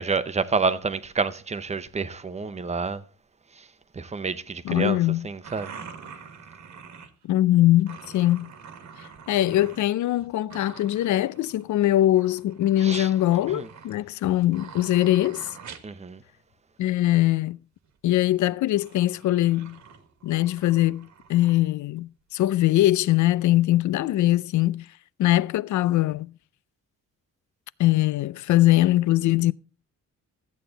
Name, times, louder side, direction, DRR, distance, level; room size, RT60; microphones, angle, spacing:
voice 1, 0.0-3.0 3.6-3.7 3.9-5.0 5.2-5.7 12.8-13.1 13.5-13.7 15.8-16.2, right 4 dB, 20° right, 0.7 m, -28 dB
voice 2, 4.6-5.3 7.2-8.5 9.3-15.5 16.8-17.6 18.0-19.8 20.2-24.9 25.2-26.3 27.8-29.5, left 15 dB, 75° left, 0.5 m, -22 dB
sound 1, 5.4-7.2 7.8-9.8 10.1-11.7 12.0-16.0 17.8-17.9 18.7-21.6 22.4-22.5 22.8-23.0, right 6 dB, 70° right, 1.4 m, -46 dB
14.0 x 8.4 x 3.9 m
wide cardioid pair, 150°, 30 cm